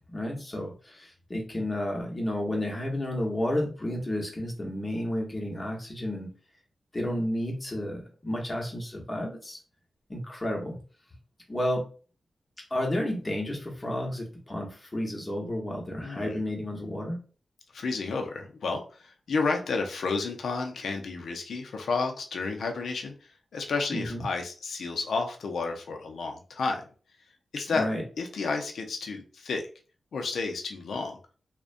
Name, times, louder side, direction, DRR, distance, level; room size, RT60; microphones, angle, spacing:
voice 1, 0.0-6.3 6.9-9.6 10.1-10.8 11.5-11.9 12.7-17.2 23.9-24.2 27.7-28.0, left 1 dB, 30° left, -1 dB, 0.9 m, -31 dB
voice 2, 16.0-16.4 17.7-26.8 27.5-27.9 28.2-29.6 30.1-31.2, left 4 dB, 80° left, 3 dB, 0.4 m, -31 dB
2.4 x 2.1 x 2.5 m, 0.38 s
cardioid pair, 55°, 0 cm